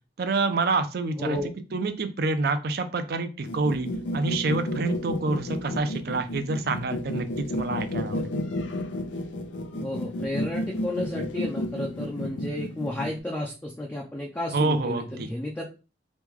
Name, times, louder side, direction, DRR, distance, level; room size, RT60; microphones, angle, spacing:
voice 1, 0.2-1.4 1.7-8.4 14.5-15.3, right 3 dB, 55° right, 9 dB, 0.4 m, -27 dB
voice 2, 1.2-1.5 9.8-15.6, left 1 dB, 10° left, -2 dB, 0.4 m, -32 dB
sound 1, 3.4-13.2, left 1 dB, 90° left, 0.5 m, -32 dB
3.0 x 2.3 x 3.5 m, 0.32 s
head